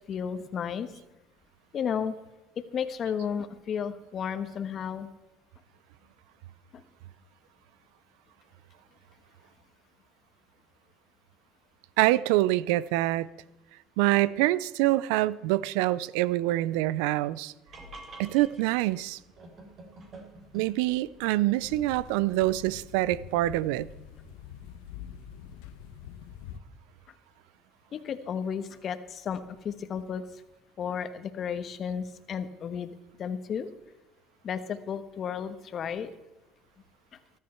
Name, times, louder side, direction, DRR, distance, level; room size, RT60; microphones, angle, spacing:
voice 1, 0.1-0.9 1.7-2.1 2.7-5.1 6.7-6.8 27.9-30.3 30.8-33.7 34.4-36.1, left 7 dB, 50° left, 1.3 m, -33 dB
voice 2, 12.0-13.3 14.0-17.5 18.2-19.2 20.5-23.9, right 16 dB, 85° right, 0.4 m, -25 dB
sound 1, 17.7-24.7, right 2 dB, 50° right, 4.0 m, -51 dB
sound 2, 21.6-26.6, left 9 dB, 90° left, 0.9 m, -45 dB
14.5 x 13.0 x 4.5 m
supercardioid pair, 85°, 0 cm